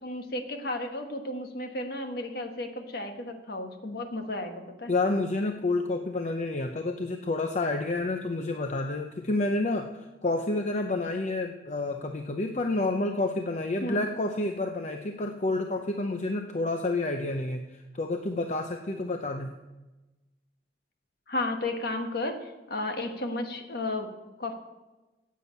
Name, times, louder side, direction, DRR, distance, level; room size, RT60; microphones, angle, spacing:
voice 1, 0.0-4.9 13.8-14.1 21.3-24.1 24.4-24.5, left 2 dB, 60° left, 5 dB, 1.5 m, -33 dB
voice 2, 4.9-17.6 17.9-19.5, left 2 dB, 40° left, 5 dB, 0.7 m, -29 dB
9.8 x 8.4 x 8.3 m, 1.1 s
head